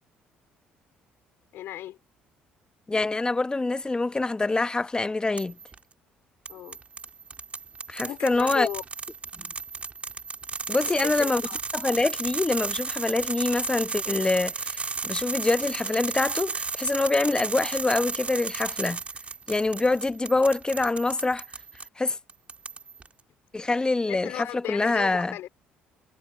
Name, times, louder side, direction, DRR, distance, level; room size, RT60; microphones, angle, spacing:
voice 1, 1.5-2.0 6.5-6.8 8.0-8.8 10.8-11.6 24.1-25.5, left 13 dB, 70° left, 4.4 m, -36 dB
voice 2, 2.9-5.6 7.9-8.7 9.4-9.5 10.7-11.4 11.7-19.0 19.5-21.4 22.0-22.2 23.5-25.3, left 3 dB, 20° left, 1.1 m, -25 dB
sound 1, 5.4-5.8 6.5-21.9 22.3-23.1, right 4 dB, 30° right, 4.4 m, -34 dB
hypercardioid pair, 60°, 4 cm